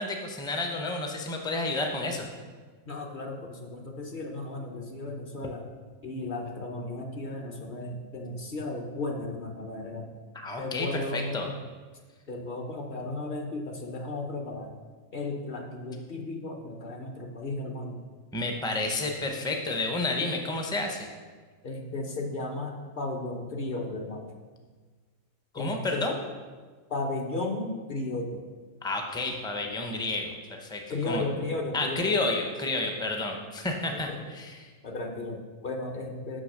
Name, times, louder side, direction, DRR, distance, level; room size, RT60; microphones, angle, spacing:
voice 1, 0.0-2.3 10.3-11.5 18.3-21.1 25.5-26.1 28.8-31.2 31.7-34.7, left 2 dB, 5° left, 3 dB, 0.4 m, -30 dB
voice 2, 2.9-5.7 6.0-10.1 10.6-11.6 12.3-14.7 15.1-18.0 21.6-24.3 25.5-26.1 26.9-28.4 30.9-32.1 33.9-34.2 34.8-36.4, left 2 dB, 45° left, 2 dB, 0.8 m, -34 dB
6.2 x 5.7 x 6.5 m, 1.5 s
omnidirectional pair, 1.4 m